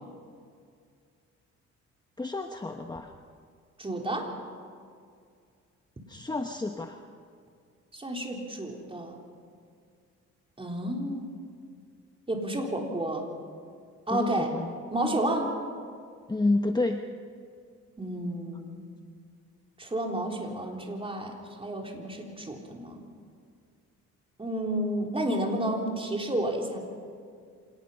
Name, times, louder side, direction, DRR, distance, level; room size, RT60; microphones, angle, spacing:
voice 1, 2.2-3.1 6.1-7.0 14.1-14.7 16.3-17.0, left 2 dB, 15° left, 5 dB, 1.0 m, -29 dB
voice 2, 3.8-4.3 7.9-9.2 10.6-11.3 12.3-13.3 14.1-14.5 14.9-15.5 18.0-18.8 19.8-23.0 24.4-26.8, right 1 dB, 20° right, 1 dB, 3.7 m, -31 dB
26.0 x 18.5 x 5.6 m, 2.2 s
cardioid pair, 90°, 30 cm